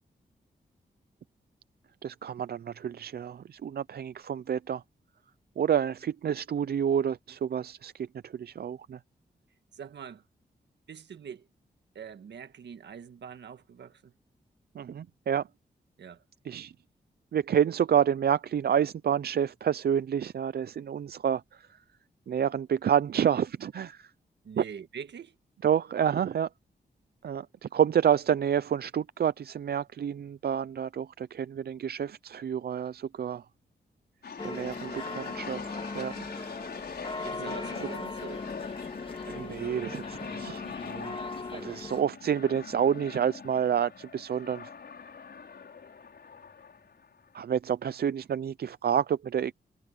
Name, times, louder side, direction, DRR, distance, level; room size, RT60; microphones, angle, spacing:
voice 1, 2.0-4.8 5.6-9.0 14.7-15.5 16.4-16.7 17.3-21.7 22.3-24.1 24.6-24.7 25.6-26.5 27.2-33.4 34.4-36.6 37.4-37.9 39.3-41.2 41.5-44.7 47.3-49.5, right 8 dB, 65° right, 0.5 m, -29 dB
voice 2, 9.7-10.2 10.9-11.5 11.9-14.1 16.0-16.2 24.4-25.3 34.7-35.2 37.2-38.5 41.4-41.6, right 7 dB, 80° right, 1.7 m, -44 dB
sound 1, 34.2-47.3, left 6 dB, 65° left, 5.7 m, -43 dB
sound 2, 34.4-42.0, left 3 dB, 30° left, 2.1 m, -39 dB
cardioid pair, 75°, 18 cm